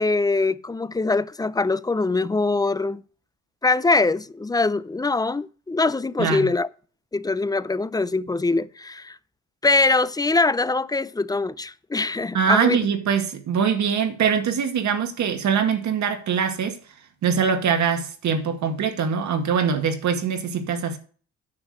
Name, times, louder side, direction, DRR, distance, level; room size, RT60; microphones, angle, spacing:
voice 1, 0.0-3.0 3.6-6.7 7.1-9.2 9.6-12.8, left 3 dB, 15° left, 0.5 m, -23 dB
voice 2, 6.2-6.5 12.3-16.8 17.2-21.0, right 6 dB, 70° right, 2.0 m, -23 dB
9.7 x 6.2 x 6.4 m
cardioid pair, 90°, 30 cm